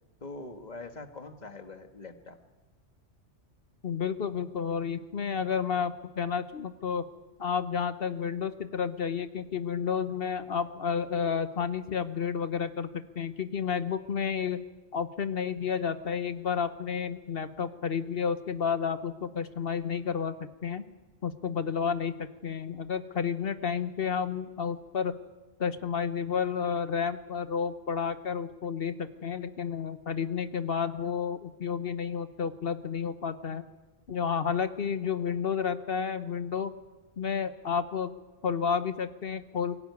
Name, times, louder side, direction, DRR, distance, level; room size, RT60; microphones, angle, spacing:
voice 1, 0.2-2.4, left 3 dB, 35° left, 7 dB, 1.7 m, -43 dB
voice 2, 3.8-7.0 7.4-14.6 14.9-20.3 20.6-20.8 21.2-25.1 25.6-33.6 34.1-36.7 37.2-38.1 38.4-39.8, left 6 dB, 50° left, 12 dB, 1.1 m, -31 dB
22.5 x 17.5 x 9.5 m, 1.2 s
omnidirectional pair, 1.3 m